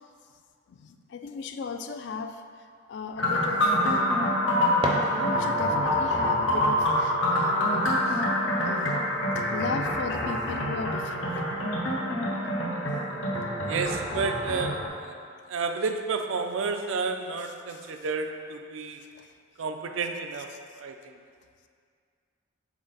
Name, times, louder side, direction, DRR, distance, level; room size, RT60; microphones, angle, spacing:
voice 1, 0.7-2.4 2.9-4.2 5.1-8.2 8.6-9.0 9.5-11.3 17.7-17.8 19.2-19.3, left 4 dB, 60° left, 7 dB, 0.3 m, -36 dB
sound 1, 3.2-14.9, left 1 dB, 75° left, 1.0 m, -26 dB
sound 2, 4.3-5.8, right 1 dB, 25° right, 0.5 m, -33 dB
voice 2, 13.7-15.1 15.5-19.0 19.6-20.5 20.8-21.0, right 4 dB, 80° right, 6 dB, 0.4 m, -31 dB
6.2 x 4.3 x 3.9 m, 2.2 s
head